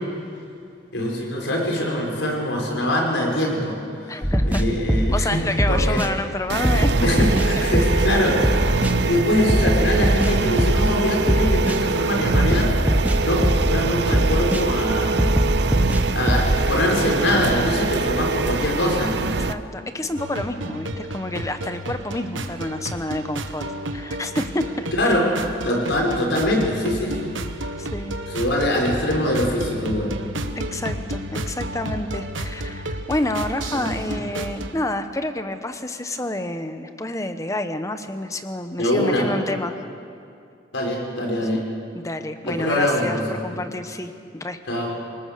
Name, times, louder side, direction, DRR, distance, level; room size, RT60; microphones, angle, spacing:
voice 1, 0.9-5.4 5.7-6.0 7.0-15.2 16.1-19.4 24.9-25.3 25.6-27.3 28.3-30.1 33.7-34.0 38.8-39.3 40.7-41.6 42.5-43.7 44.7-44.9, left 1 dB, 75° left, 0 dB, 5.3 m, -23 dB
voice 2, 4.1-4.6 5.1-7.7 15.0-15.1 19.4-24.6 25.0-25.1 27.8-28.2 30.6-39.8 41.4-41.5 41.9-44.6, left 1 dB, 15° left, 9 dB, 1.0 m, -29 dB
sound 1, 4.2-5.3 5.6-6.1 6.6-8.1 8.4-8.9 9.5-10.9 11.3-11.8 12.3-13.8 14.1-14.6 15.2-16.6, equal, 10° right, 1.0 m, -21 dB
sound 2, 6.5-19.5, right 4 dB, 65° right, 0.6 m, -24 dB
sound 3, 20.2-34.7, right 1 dB, 90° right, 1.4 m, -32 dB
28.0 x 19.0 x 6.9 m, 2.5 s
head